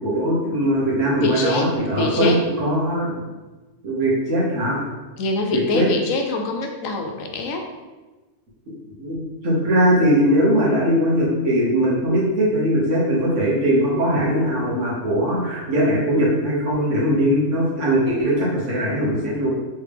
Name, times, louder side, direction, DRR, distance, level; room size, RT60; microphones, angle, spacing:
voice 1, 0.0-3.2 3.8-4.8 5.5-5.9 9.0-19.5, equal, 65° right, -5 dB, 1.4 m, -20 dB
voice 2, 1.2-2.4 5.2-7.7, left 3 dB, 80° left, 3 dB, 1.0 m, -24 dB
3.5 x 3.3 x 3.3 m, 1.2 s
omnidirectional pair, 1.4 m